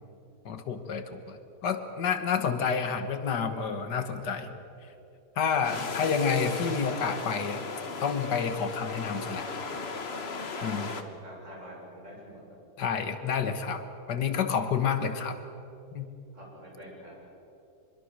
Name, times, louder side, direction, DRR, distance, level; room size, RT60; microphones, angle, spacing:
voice 1, 0.5-4.5 5.4-7.7 8.0-9.5 10.6-10.9 12.8-15.4 15.9-16.1, left 6 dB, 85° left, 8 dB, 2.0 m, -29 dB
sound 1, 5.6-11.0, left 4 dB, 40° left, 1.5 m, -36 dB
voice 2, 10.5-12.6 16.3-17.2, equal, 45° right, -4 dB, 7.6 m, -46 dB
25.0 x 22.0 x 6.6 m, 2.8 s
omnidirectional pair, 1.8 m